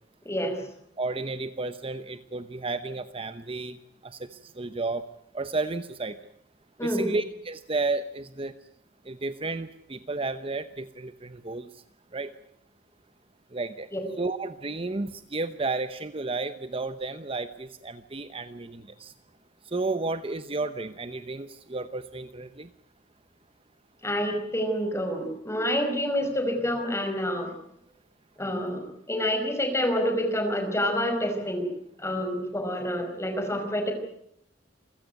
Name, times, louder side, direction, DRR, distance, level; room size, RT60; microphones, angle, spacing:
voice 1, 0.2-0.6 6.8-7.1 13.9-14.0 24.0-27.5 28.4-31.7 32.0-33.9, equal, 15° left, 6 dB, 5.2 m, -28 dB
voice 2, 1.0-5.0 5.3-6.2 6.8-8.5 9.1-11.8 12.1-12.3 13.5-13.9 14.2-19.1 19.6-22.7, right 3 dB, 30° right, 11 dB, 0.9 m, -32 dB
28.0 x 16.0 x 9.4 m, 0.73 s
head